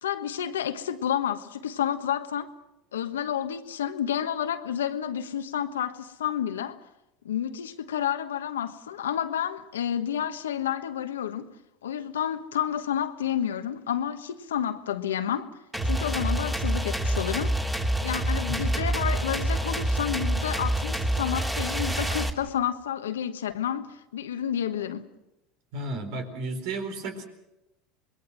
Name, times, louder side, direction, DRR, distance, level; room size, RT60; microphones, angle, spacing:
voice 1, 0.0-2.5 2.9-6.8 7.2-11.5 11.8-15.5 15.8-17.6 18.0-25.1, left 9 dB, 90° left, 1.3 m, -30 dB
sound 1, 15.7-22.3, right 1 dB, 10° right, 2.8 m, -27 dB
voice 2, 25.7-27.2, right 2 dB, 65° right, 4.3 m, -33 dB
26.5 x 21.0 x 6.2 m
hypercardioid pair, 85°, 0 cm